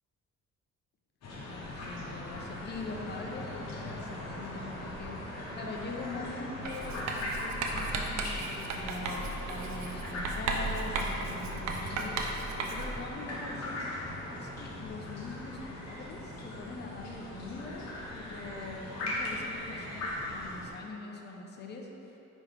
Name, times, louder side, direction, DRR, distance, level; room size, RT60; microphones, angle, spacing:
sound 1, 1.2-20.7, left 1 dB, 60° left, 1.0 m, -39 dB
voice 1, 1.5-5.2 5.5-13.8 14.3-17.8 18.1-22.2, left 3 dB, 35° left, 0 dB, 0.6 m, -43 dB
Writing, 6.7-13.1, right 3 dB, 70° right, 0.5 m, -35 dB
5.2 x 3.1 x 3.3 m, 3.0 s
cardioid pair, 90°, 30 cm